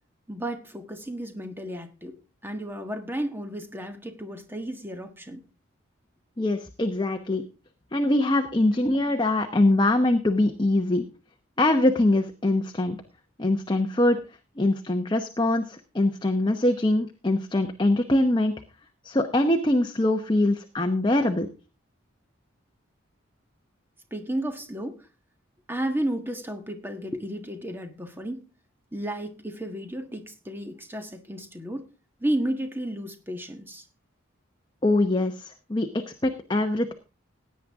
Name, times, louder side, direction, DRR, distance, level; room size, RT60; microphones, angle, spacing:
voice 1, 0.3-2.2 2.4-5.4 24.1-25.0 25.7-28.5 28.9-31.9 32.2-33.8, right 1 dB, 10° right, 6 dB, 1.5 m, -32 dB
voice 2, 6.4-7.4 7.9-11.0 11.6-13.0 13.4-14.2 14.6-18.5 19.0-21.5 34.8-36.9, left 1 dB, 20° left, 5 dB, 0.9 m, -23 dB
16.5 x 9.6 x 3.6 m, 0.32 s
head